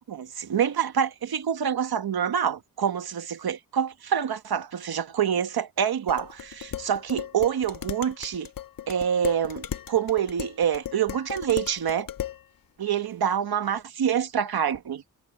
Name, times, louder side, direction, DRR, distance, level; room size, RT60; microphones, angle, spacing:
voice 1, 0.1-8.5 8.9-12.1 12.8-15.0, right 8 dB, 85° right, 1.3 m, -26 dB
Dishes pots and pans, 6.1-12.4, left 10 dB, 65° left, 0.8 m, -36 dB
wide cardioid pair, 120°, 36 cm